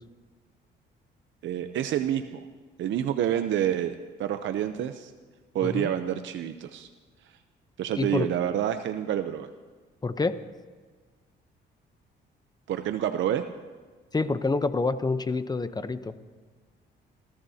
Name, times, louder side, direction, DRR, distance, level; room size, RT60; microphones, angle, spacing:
voice 1, 1.4-2.4 2.8-5.1 5.5-6.9 7.8-9.5 12.7-13.4, right 10 dB, 70° right, 8 dB, 0.7 m, -28 dB
voice 2, 5.6-5.9 8.0-8.3 10.0-10.4 14.1-16.1, left 3 dB, 20° left, 12 dB, 0.8 m, -27 dB
27.5 x 14.0 x 2.8 m, 1.4 s
cardioid pair, 90°, 20 cm